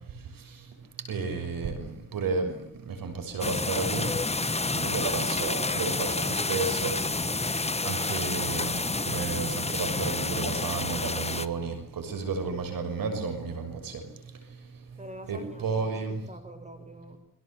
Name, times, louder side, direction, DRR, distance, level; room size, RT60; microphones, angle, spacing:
voice 1, 1.1-2.5 2.9-4.1 4.7-7.0 7.8-14.0 15.3-16.2, right 4 dB, 85° right, 7 dB, 6.6 m, -32 dB
sound 1, 3.4-11.5, left 3 dB, 20° left, 1.4 m, -29 dB
voice 2, 5.1-5.7 15.0-16.0 16.3-17.2, right 1 dB, 20° right, 8 dB, 7.4 m, -46 dB
29.5 x 23.5 x 8.1 m, 0.66 s
cardioid pair, 90°, 33 cm